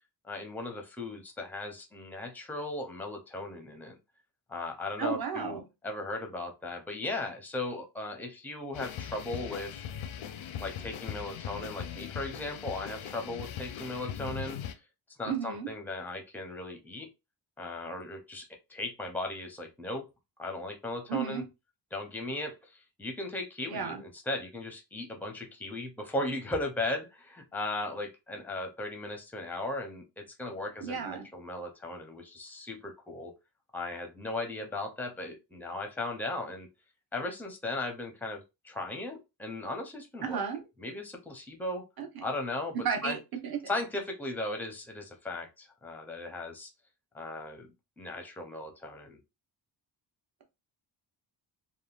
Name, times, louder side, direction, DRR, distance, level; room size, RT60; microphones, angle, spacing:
voice 1, 0.2-3.9 4.5-9.8 10.6-14.8 15.2-17.1 17.6-20.1 20.4-21.4 21.9-33.3 33.7-36.7 37.1-40.4 40.8-41.8 42.2-42.8 43.0-43.2 43.7-46.7 47.1-49.2, left 2 dB, 5° left, 0.5 m, -37 dB
voice 2, 5.0-5.6 15.3-15.7 21.1-21.5 23.7-24.0 30.8-31.3 40.2-40.6 42.0-42.2 42.7-43.6, right 6 dB, 50° right, 0.8 m, -33 dB
sound 1, 8.7-14.7, left 9 dB, 85° left, 0.5 m, -40 dB
3.5 x 2.2 x 2.3 m
wide cardioid pair, 145°, 47 cm